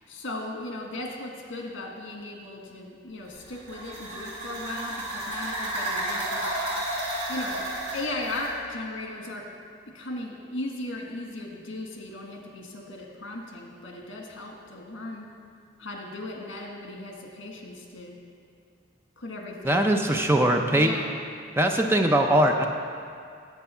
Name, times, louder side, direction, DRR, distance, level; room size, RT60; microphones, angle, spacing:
voice 1, 0.0-6.8 7.3-7.6 7.9-9.4 9.9-15.3 15.8-18.2 19.2-21.1, left 2 dB, 80° left, 0 dB, 1.7 m, -37 dB
sound 1, 3.3-8.5, right 1 dB, 30° right, 2.5 m, -32 dB
voice 2, 19.6-20.9 21.6-22.7, right 1 dB, 10° right, 3 dB, 0.5 m, -21 dB
9.2 x 8.1 x 5.6 m, 2.3 s
head